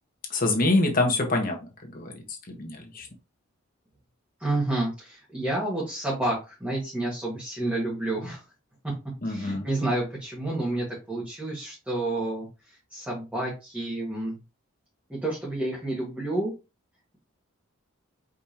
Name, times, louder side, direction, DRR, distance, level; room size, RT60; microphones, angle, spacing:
voice 1, 0.3-1.6 1.9-3.1 9.2-9.7, left 2 dB, 40° left, 2 dB, 1.2 m, -25 dB
voice 2, 4.4-8.4 8.8-9.0 9.2-14.4 15.1-16.5, right 2 dB, 5° right, -6 dB, 1.6 m, -30 dB
5.1 x 3.5 x 2.9 m, 0.28 s
head